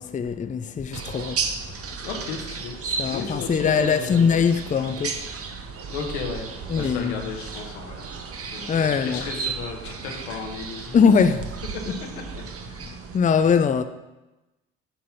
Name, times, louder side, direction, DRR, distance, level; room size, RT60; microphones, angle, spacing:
voice 1, 0.0-1.5 1.9-2.0 3.0-5.2 6.7-7.2 8.7-9.2 10.9-11.5 11.9-12.0 12.8-13.8, left 6 dB, 25° left, 0.5 m, -22 dB
sound 1, 0.9-13.2, right 5 dB, 45° right, 1.0 m, -34 dB
voice 2, 2.0-2.8 3.0-4.4 5.9-6.5 6.7-10.9 12.1-12.4, left 5 dB, 85° left, 1.3 m, -34 dB
7.5 x 4.3 x 5.7 m
hypercardioid pair, 60°, 33 cm